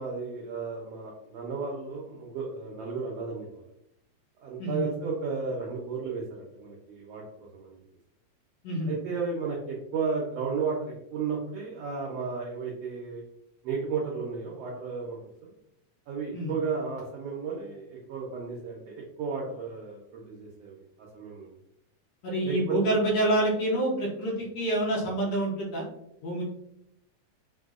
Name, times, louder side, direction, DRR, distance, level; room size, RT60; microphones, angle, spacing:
voice 1, 0.0-3.6 4.4-7.2 7.5-7.8 8.9-13.2 13.6-15.2 15.4-15.5 16.1-21.5 22.4-22.8, right 5 dB, 90° right, -2 dB, 1.4 m, -33 dB
voice 2, 22.2-25.8 26.2-26.4, right 1 dB, 70° left, -3 dB, 1.7 m, -27 dB
5.3 x 2.0 x 2.3 m, 0.79 s
omnidirectional pair, 3.5 m